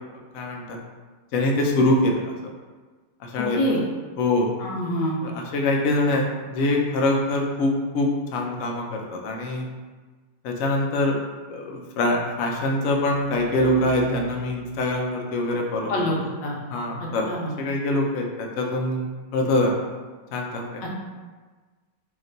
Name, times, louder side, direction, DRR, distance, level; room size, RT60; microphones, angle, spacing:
voice 1, 0.3-0.8 1.3-2.3 3.2-3.6 4.2-4.5 5.2-9.7 10.4-11.2 11.5-16.1 16.7-17.3 17.6-19.0 19.3-19.8 20.3-20.8, left 1 dB, 70° left, 1 dB, 0.8 m, -24 dB
voice 2, 4.6-5.2 15.9-16.1 16.4-16.5 17.3-17.5 20.8-20.9, left 1 dB, 90° left, -2 dB, 1.4 m, -25 dB
3.1 x 3.0 x 3.8 m, 1.4 s
omnidirectional pair, 1.9 m